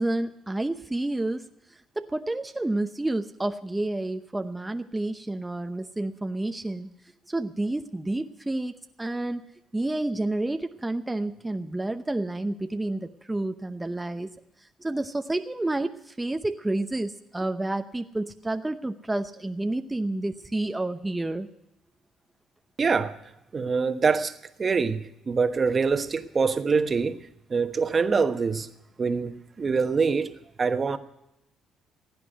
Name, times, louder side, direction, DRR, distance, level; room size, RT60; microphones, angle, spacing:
voice 1, 0.0-1.5 2.0-6.9 7.3-9.5 9.7-14.3 14.8-21.5, right 2 dB, 15° right, 0.8 m, -29 dB
voice 2, 22.8-23.2 23.5-28.7 29.0-31.0, right 5 dB, 35° right, 1.2 m, -25 dB
16.5 x 9.7 x 8.0 m
supercardioid pair, 75°, 0 cm